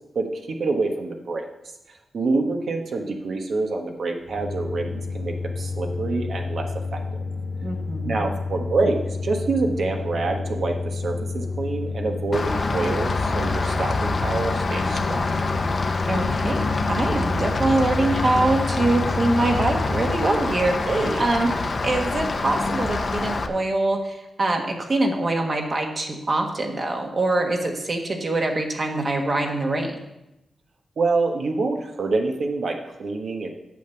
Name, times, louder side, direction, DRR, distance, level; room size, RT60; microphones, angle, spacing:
voice 1, 0.1-1.4 2.1-7.0 8.0-15.3 20.8-21.2 31.0-33.5, right 3 dB, 60° right, 3 dB, 1.3 m, -26 dB
sound 1, 4.2-20.3, left 4 dB, 80° left, 2.1 m, -30 dB
voice 2, 7.6-8.3 16.1-21.5 21.8-30.0, right 2 dB, 35° right, 2 dB, 1.5 m, -24 dB
Rain, 12.3-23.5, left 3 dB, 40° left, 0.9 m, -26 dB
9.1 x 6.9 x 7.0 m, 0.91 s
wide cardioid pair, 140°, 0 cm